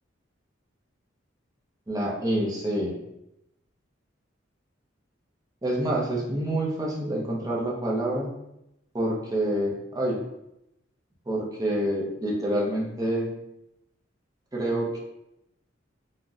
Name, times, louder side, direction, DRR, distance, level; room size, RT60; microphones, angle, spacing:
voice 1, 1.9-3.0 5.6-8.3 8.9-10.2 11.3-13.3 14.5-15.0, right 1 dB, 20° right, -3 dB, 0.6 m, -27 dB
3.8 x 2.1 x 2.4 m, 0.85 s
head